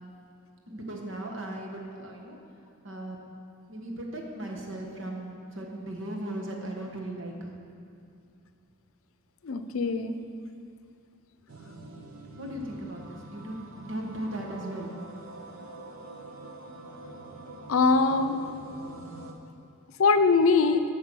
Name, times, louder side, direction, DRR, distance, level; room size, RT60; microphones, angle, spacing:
voice 1, 0.7-2.4 2.8-3.2 3.7-7.5 12.4-14.9, right 1 dB, 65° right, 0 dB, 1.3 m, -37 dB
voice 2, 9.4-10.2 17.7-18.4 20.0-20.8, left 4 dB, 85° left, 9 dB, 0.5 m, -22 dB
sound 1, 11.5-19.3, right 2 dB, 85° right, 0.9 m, -45 dB
8.2 x 6.2 x 6.2 m, 2.5 s
head